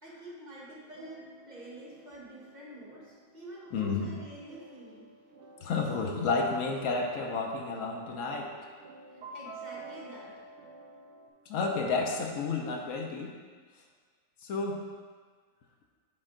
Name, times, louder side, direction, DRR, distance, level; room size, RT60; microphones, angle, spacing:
voice 1, 0.0-5.1 9.1-10.3, right 1 dB, 35° right, -6 dB, 1.2 m, -48 dB
sound 1, 0.9-11.3, right 2 dB, 75° right, 1.1 m, -50 dB
voice 2, 3.7-4.1 5.6-8.5 11.5-13.3 14.4-14.8, left 4 dB, 70° left, 1 dB, 1.0 m, -31 dB
6.2 x 4.4 x 3.8 m, 1.5 s
omnidirectional pair, 1.5 m